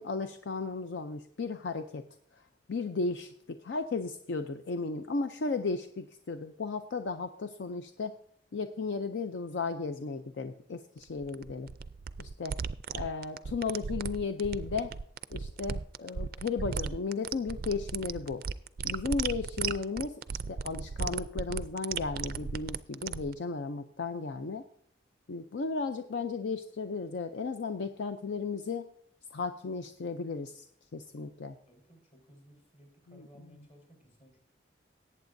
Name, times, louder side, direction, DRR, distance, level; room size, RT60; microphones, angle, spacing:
voice 1, 0.0-2.0 2.4-2.5 2.7-8.1 8.5-11.7 12.2-12.6 12.9-14.9 15.3-18.4 18.8-24.6 25.3-28.9 29.3-30.6 30.9-31.5 33.1-33.3, left 4 dB, 75° left, 8 dB, 0.5 m, -35 dB
sound 1, 11.0-23.3, right 6 dB, 50° right, 0.3 m, -36 dB
voice 2, 31.7-34.4, equal, 40° left, 1 dB, 4.1 m, -58 dB
18.5 x 8.4 x 2.6 m, 0.68 s
head